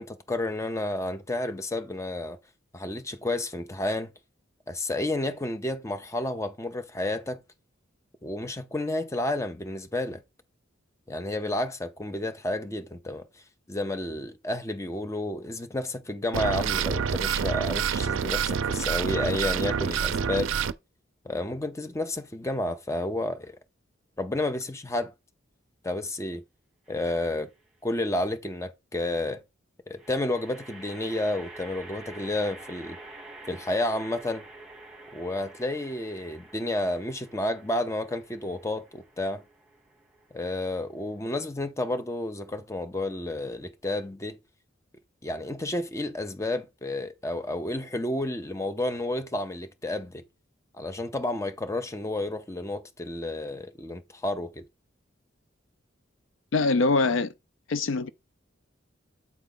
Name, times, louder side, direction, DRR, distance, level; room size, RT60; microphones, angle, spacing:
voice 1, 0.0-2.4 2.7-4.1 4.7-7.4 8.2-10.2 11.1-13.3 13.7-20.5 21.2-23.6 24.2-25.1 25.8-26.4 26.9-27.5 27.8-29.4 29.9-33.0 33.5-34.4 35.1-39.4 40.3-44.4 45.2-50.2 50.7-54.7, left 1 dB, 15° left, 0.5 m, -31 dB
sound 1, 16.3-20.7, right 7 dB, 75° right, 0.4 m, -27 dB
sound 2, 26.9-27.4 30.0-41.3, right 2 dB, 5° right, 2.0 m, -48 dB
voice 2, 56.5-57.3 57.7-58.1, left 3 dB, 75° left, 0.5 m, -23 dB
8.2 x 4.1 x 3.8 m
head